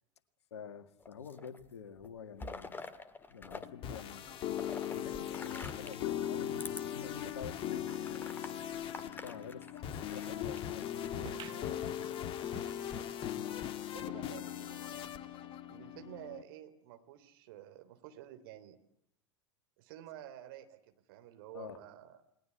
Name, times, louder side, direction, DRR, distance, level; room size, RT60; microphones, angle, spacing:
voice 1, 0.5-2.8 3.3-4.3 4.9-8.3 9.0-12.3 21.5-21.8, left 7 dB, 65° left, 10 dB, 1.9 m, -48 dB
sound 1, 1.0-1.7 2.0-3.7 3.9-6.1 6.6-6.8 7.3-7.4 7.9-10.6 11.4-12.0, left 3 dB, 15° left, 1.8 m, -47 dB
sound 2, 3.6-16.4, left 10 dB, 35° left, 1.5 m, -39 dB
sound 3, 11.2-14.2 14.6-14.7 14.9-15.0 15.8-15.9, right 12 dB, 30° right, 1.1 m, -54 dB
voice 2, 13.9-15.1 15.7-18.8 19.8-22.2, right 12 dB, 50° right, 8 dB, 3.3 m, -51 dB
29.5 x 20.5 x 8.4 m, 0.77 s
figure-of-eight pair, 85°, 15 cm